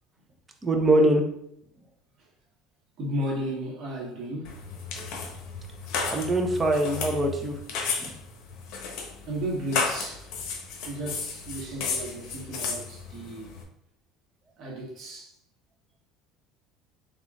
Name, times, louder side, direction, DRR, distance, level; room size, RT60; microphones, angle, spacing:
voice 1, 0.6-1.2 6.1-7.6 8.0-8.2, right 1 dB, 20° right, 0.9 m, -23 dB
voice 2, 3.0-4.6 9.3-10.3 10.8-13.6 14.6-15.4, right 1 dB, 50° right, 1.6 m, -34 dB
sound 1, 4.4-13.6, left 5 dB, 65° left, 1.0 m, -33 dB
3.8 x 3.5 x 3.6 m
supercardioid pair, 125°, 0 cm